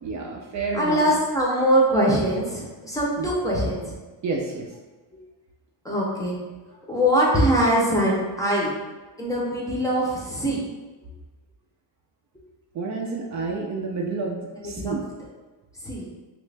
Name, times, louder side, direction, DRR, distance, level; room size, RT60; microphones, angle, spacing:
voice 1, 0.0-1.1 3.2-3.3 4.2-4.7 12.7-15.0, right 4 dB, 45° right, 0 dB, 0.4 m, -29 dB
voice 2, 0.7-3.9 5.8-6.4 6.9-8.8 9.2-10.6 14.6-15.0 15.8-16.1, equal, 10° left, -4 dB, 0.6 m, -22 dB
3.1 x 2.5 x 3.3 m, 1.2 s
cardioid pair, 145°, 40 cm